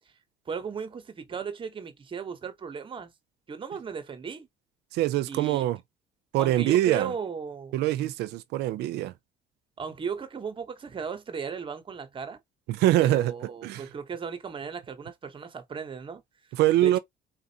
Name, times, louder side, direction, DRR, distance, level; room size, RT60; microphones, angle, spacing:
voice 1, 0.5-3.1 3.5-4.5 5.3-5.7 6.4-8.1 9.8-12.4 13.0-16.2 16.8-17.0, right 6 dB, 30° right, 0.9 m, -36 dB
voice 2, 4.9-5.8 6.3-7.1 7.7-9.1 12.7-13.3 13.6-13.8 16.6-17.0, right 14 dB, 80° right, 0.4 m, -24 dB
4.0 x 2.5 x 2.7 m
cardioid pair, 110°, 17 cm